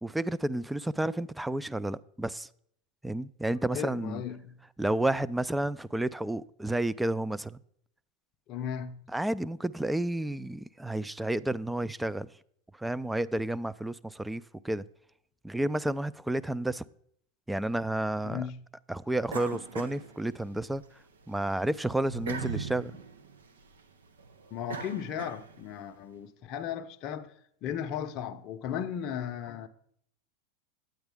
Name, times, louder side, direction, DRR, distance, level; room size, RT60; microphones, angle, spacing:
voice 1, 0.0-2.5 3.0-4.2 4.8-7.6 9.1-12.3 12.8-14.8 15.4-16.8 17.5-18.4 18.9-20.8 21.3-22.9, right 1 dB, 5° right, 0.3 m, -31 dB
voice 2, 3.7-4.6 8.5-9.1 18.2-18.7 24.5-27.3 27.6-29.7, left 9 dB, 45° left, 0.6 m, -36 dB
sound 1, 19.3-20.8 21.2-25.8, right 5 dB, 90° right, 0.7 m, -40 dB
9.0 x 8.7 x 3.5 m
hypercardioid pair, 100°, 0 cm